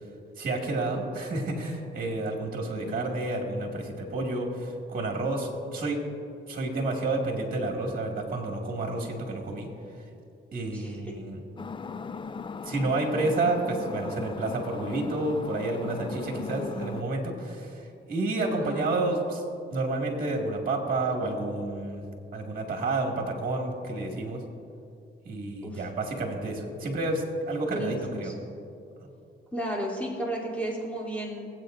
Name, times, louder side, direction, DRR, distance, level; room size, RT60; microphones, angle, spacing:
voice 1, 0.4-6.0 6.5-9.7 10.5-11.4 12.6-19.4 19.7-22.0 22.3-24.4 25.3-28.3, right 2 dB, 45° right, 1 dB, 2.1 m, -30 dB
voice 2, 2.7-3.0 10.7-11.0 16.3-16.9 18.4-18.9 25.6-25.9 27.7-28.3 29.5-31.5, right 1 dB, 5° left, -4 dB, 3.1 m, -34 dB
sound 1, 11.6-17.0, left 5 dB, 25° left, 0.4 m, -38 dB
22.5 x 8.3 x 2.6 m, 2.6 s
cardioid pair, 90°, 20 cm